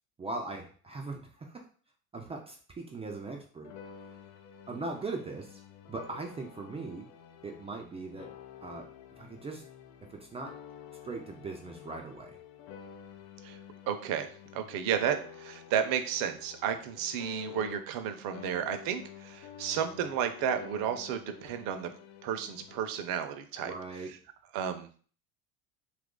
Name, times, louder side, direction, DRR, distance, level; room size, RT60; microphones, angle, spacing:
voice 1, 0.2-1.7 2.1-3.7 4.7-5.5 5.9-7.1 7.4-8.3 8.6-8.9 9.2-9.6 10.1-10.5 11.0-12.4 23.6-24.2, right 3 dB, 15° right, 2 dB, 0.3 m, -39 dB
sound 1, 3.6-18.1 18.3-22.8, left 8 dB, 75° left, 0.6 m, -50 dB
voice 2, 13.9-21.9 22.2-23.7 24.1-24.2 24.5-25.1, right 8 dB, 55° right, 8 dB, 0.6 m, -32 dB
2.8 x 2.5 x 3.6 m, 0.43 s
hypercardioid pair, 90°, 42 cm